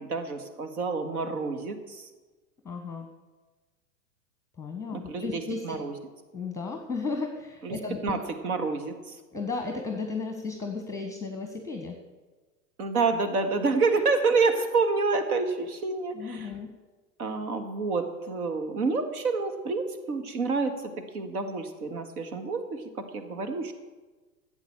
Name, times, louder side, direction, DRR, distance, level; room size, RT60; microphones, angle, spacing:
voice 1, 0.0-2.1 4.9-5.9 7.6-7.8 8.0-8.2 8.4-9.2 12.8-16.5 17.2-22.8 23.1-23.7, right 4 dB, 60° right, 7 dB, 2.0 m, -28 dB
voice 2, 2.6-3.1 4.6-5.8 6.3-8.2 9.3-12.0 16.1-16.7, left 4 dB, 5° left, 4 dB, 1.3 m, -34 dB
14.0 x 8.4 x 7.1 m, 1.3 s
figure-of-eight pair, 90°, 49 cm